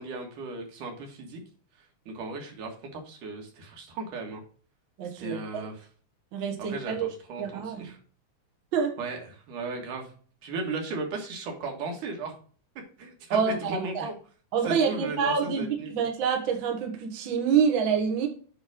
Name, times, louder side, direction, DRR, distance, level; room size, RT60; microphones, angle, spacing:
voice 1, 0.0-1.4 2.1-4.4 5.2-5.9 6.6-8.0 9.0-9.2 9.5-10.1 10.4-12.3 13.0-14.1 14.6-16.0, right 3 dB, 85° right, 2 dB, 3.2 m, -36 dB
voice 2, 5.0-5.6 6.3-7.1 7.4-7.9 8.7-9.0 13.3-14.1 14.5-18.3, right 6 dB, 50° right, 2 dB, 1.7 m, -27 dB
9.2 x 3.4 x 6.0 m, 0.42 s
omnidirectional pair, 3.5 m